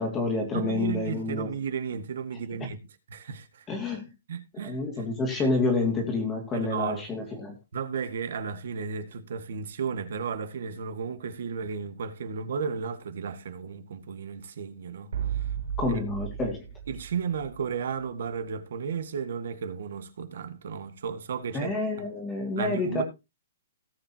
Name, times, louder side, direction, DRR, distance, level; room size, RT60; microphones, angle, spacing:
voice 1, 0.0-1.5 3.7-4.1 4.6-7.6 15.8-16.6 21.5-23.0, left 3 dB, 10° left, 2.2 m, -28 dB
voice 2, 0.5-2.8 3.1-3.7 4.3-4.8 6.5-7.0 7.7-15.5 16.9-22.1 22.6-23.0, right 6 dB, 60° right, 1.7 m, -34 dB
sound 1, 15.1-18.0, right 9 dB, 80° right, 2.9 m, -34 dB
18.0 x 7.6 x 2.8 m
hypercardioid pair, 175°, 0 cm